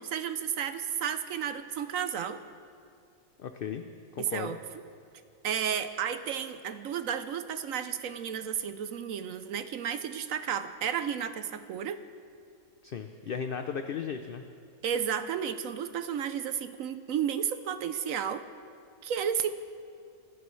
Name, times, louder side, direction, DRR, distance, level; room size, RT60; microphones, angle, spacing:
voice 1, 0.0-2.4 4.2-4.6 5.4-12.0 14.8-18.4 19.0-19.5, right 8 dB, 70° right, 10 dB, 1.0 m, -32 dB
voice 2, 3.4-3.8 4.1-4.6 12.8-14.4, left 7 dB, 55° left, 7 dB, 0.6 m, -35 dB
25.5 x 14.5 x 3.2 m, 2.3 s
omnidirectional pair, 1.5 m